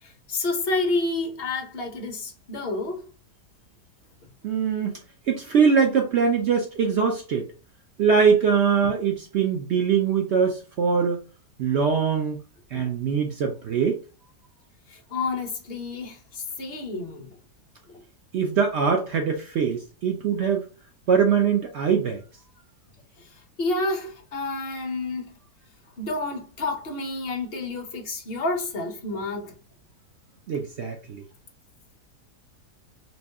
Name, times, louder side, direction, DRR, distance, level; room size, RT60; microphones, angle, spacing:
voice 1, 0.0-3.1 12.7-12.9 14.9-17.4 17.9-18.0 23.2-25.3 26.0-29.5, left 2 dB, 45° left, 1.0 m, -30 dB
voice 2, 4.4-5.0 5.3-7.5 8.0-11.2 11.6-12.4 12.7-14.0 18.3-20.7 21.1-22.2 30.5-31.2, right 6 dB, 75° right, 0.6 m, -22 dB
3.0 x 2.7 x 3.4 m
omnidirectional pair, 1.7 m